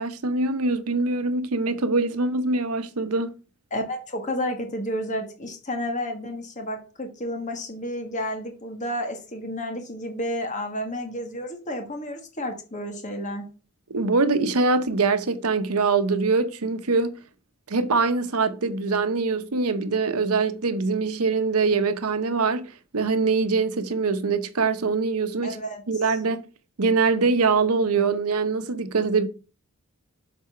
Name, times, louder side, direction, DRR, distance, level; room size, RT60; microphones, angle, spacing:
voice 1, 0.0-3.3 13.9-17.2 17.7-25.6 25.9-26.4 26.8-29.3, right 4 dB, 90° right, 0.9 m, -23 dB
voice 2, 3.7-13.4 25.4-25.8, left 1 dB, 35° left, 1.4 m, -31 dB
6.9 x 4.2 x 5.7 m
head